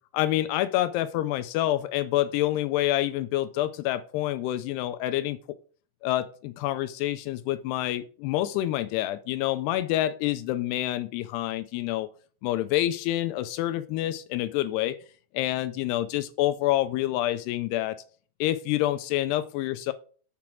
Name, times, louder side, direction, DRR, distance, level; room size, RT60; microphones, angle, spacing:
voice 1, 0.1-5.4 6.0-12.1 12.4-15.0 15.3-18.0 18.4-19.9, left 14 dB, 80° left, 12 dB, 2.5 m, -27 dB
7.5 x 5.8 x 6.1 m, 0.42 s
omnidirectional pair, 5.1 m